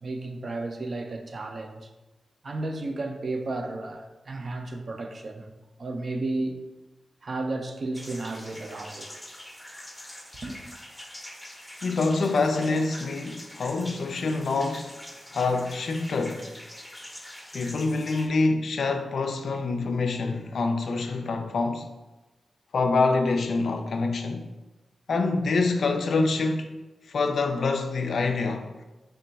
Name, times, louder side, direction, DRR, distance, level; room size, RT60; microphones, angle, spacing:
voice 1, 0.0-1.9 2.4-5.5 5.8-6.6 7.2-9.1 10.4-10.6, right 2 dB, 55° right, 0.4 m, -33 dB
sound 1, 7.9-18.3, left 1 dB, 15° left, 0.6 m, -44 dB
voice 2, 11.8-14.9 15.3-16.5 17.5-21.9 22.7-24.5 25.1-26.7 27.1-28.8, left 3 dB, 75° left, 0.3 m, -26 dB
3.4 x 2.2 x 3.9 m
cardioid pair, 55°, 0 cm